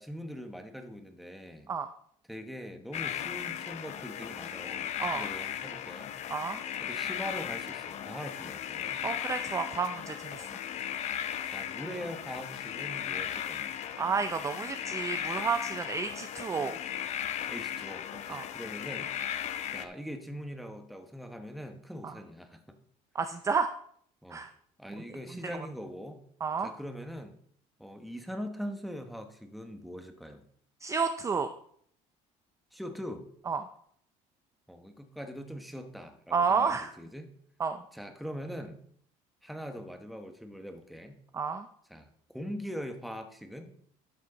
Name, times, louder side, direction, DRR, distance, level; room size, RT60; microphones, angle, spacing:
voice 1, 0.0-1.7 2.3-6.2 6.8-9.0 10.4-10.5 11.5-13.7 17.5-19.1 19.7-22.8 24.2-24.4 24.8-26.2 26.6-27.3 27.8-30.4 32.7-33.3 34.7-37.3 37.9-38.8 39.4-41.2 41.9-43.7, equal, ahead, 6 dB, 1.1 m, -42 dB
sound 1, 2.9-19.9, left 10 dB, 50° left, 0.6 m, -36 dB
voice 2, 9.0-10.5 14.0-16.8 18.3-18.4 22.0-22.1 23.1-23.7 24.3-24.5 26.4-26.7 30.8-31.5 33.5-33.6 36.3-36.9 37.6-37.8 41.3-41.7, right 5 dB, 20° right, 8 dB, 0.5 m, -30 dB
11.5 x 6.2 x 4.0 m, 0.63 s
cardioid pair, 130°, 15 cm